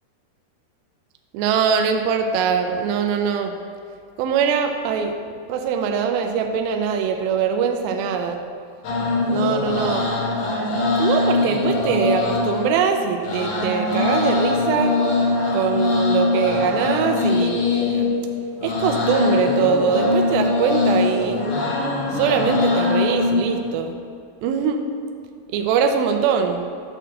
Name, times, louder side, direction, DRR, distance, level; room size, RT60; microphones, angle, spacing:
voice 1, 1.3-3.5 4.2-8.4 9.3-10.1 11.0-15.0 15.5-17.5 17.9-18.1 18.6-21.4 22.1-24.0 24.4-24.8 25.5-26.6, right 6 dB, 80° right, 5 dB, 2.2 m, -22 dB
sound 1, 8.8-23.7, left 3 dB, 65° left, 1.7 m, -22 dB
7.7 x 4.4 x 6.4 m, 2.3 s
omnidirectional pair, 4.6 m